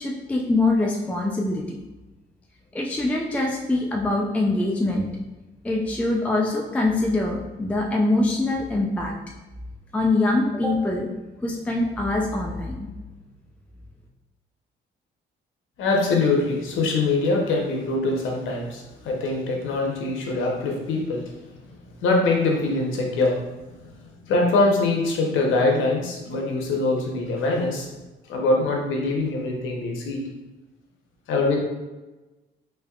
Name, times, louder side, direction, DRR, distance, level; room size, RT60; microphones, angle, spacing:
voice 1, 0.0-1.8 2.7-5.1 5.6-9.1 9.9-11.1 11.4-12.9, left 2 dB, 5° left, 0 dB, 0.3 m, -24 dB
voice 2, 15.8-21.2 22.0-23.4 24.2-27.9 28.3-30.2 31.3-31.6, left 3 dB, 80° left, 0 dB, 0.8 m, -23 dB
3.3 x 3.0 x 2.3 m, 1.1 s
cardioid pair, 90°, 20 cm